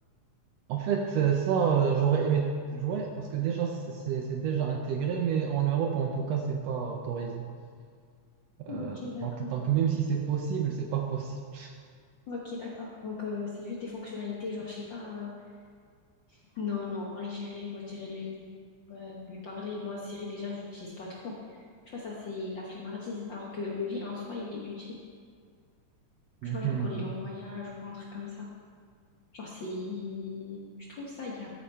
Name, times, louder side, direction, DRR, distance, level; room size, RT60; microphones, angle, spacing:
voice 1, 0.7-7.4 8.6-11.7 26.4-27.0, right 7 dB, 80° right, 3 dB, 1.5 m, -29 dB
voice 2, 8.7-9.6 12.3-15.3 16.3-18.4 18.9-25.0 26.4-28.5 29.3-31.5, left 4 dB, 65° left, -4 dB, 1.1 m, -38 dB
14.0 x 5.0 x 4.4 m, 2.1 s
omnidirectional pair, 3.3 m